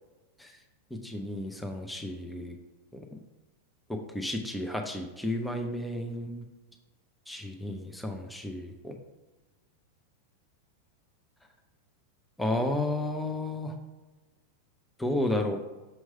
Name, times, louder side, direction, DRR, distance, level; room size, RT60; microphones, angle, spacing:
voice 1, 1.0-2.6 2.9-3.0 3.9-6.4 7.3-9.0 12.4-13.7 15.0-15.6, left 1 dB, 5° left, 3 dB, 0.6 m, -32 dB
6.5 x 3.1 x 5.3 m, 1.1 s
figure-of-eight pair, 90°, 0 cm